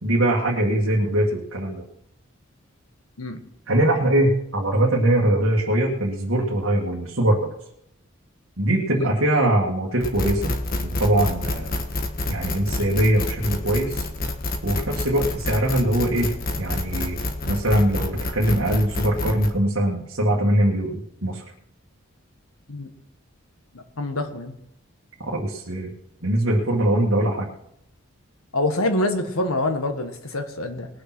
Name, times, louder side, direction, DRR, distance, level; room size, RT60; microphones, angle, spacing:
voice 1, 0.0-1.8 3.7-7.5 8.6-10.6 10.8-11.8 12.3-14.1 14.6-16.3 16.6-17.2 17.4-21.4 25.3-25.9 26.2-27.5, right 1 dB, 70° right, -4 dB, 2.0 m, -22 dB
sound 1, 10.0-19.5, left 2 dB, 45° left, 1.4 m, -28 dB
voice 2, 23.7-24.6 28.5-30.9, left 1 dB, 90° left, 7 dB, 1.7 m, -26 dB
20.0 x 6.8 x 6.1 m, 0.77 s
head